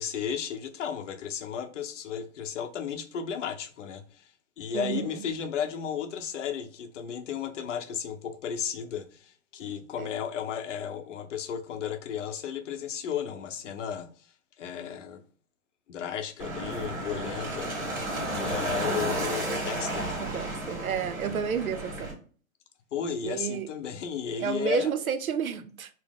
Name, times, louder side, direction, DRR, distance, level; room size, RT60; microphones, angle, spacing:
voice 1, 0.0-4.3 4.6-14.3 14.6-15.2 15.9-17.7 18.3-20.2 22.9-25.0, left 8 dB, 60° left, 0.7 m, -34 dB
voice 2, 4.7-5.2 10.0-10.1 18.9-19.1 20.2-22.1 23.2-23.7 24.4-25.9, right 6 dB, 90° right, 0.6 m, -31 dB
sound 1, 16.4-22.1, right 1 dB, 20° right, 1.8 m, -32 dB
4.2 x 2.0 x 3.6 m
hypercardioid pair, 120°, 41 cm